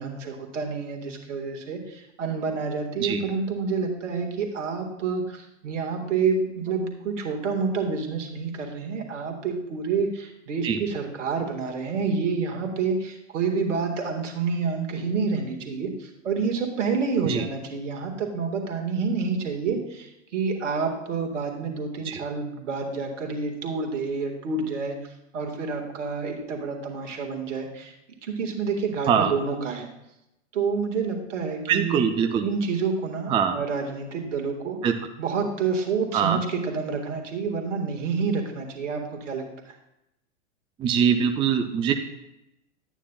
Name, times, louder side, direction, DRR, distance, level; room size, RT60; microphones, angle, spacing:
voice 1, 0.0-25.0 25.3-27.9 28.2-29.9 30.5-32.1 32.4-34.8 35.2-39.8, right 5 dB, 75° right, 3 dB, 1.7 m, -28 dB
voice 2, 31.7-32.4 33.3-33.6 34.8-34.9 36.1-36.4 40.8-41.9, right 7 dB, 15° right, 6 dB, 0.4 m, -23 dB
11.0 x 9.0 x 2.3 m, 0.87 s
hypercardioid pair, 100°, 38 cm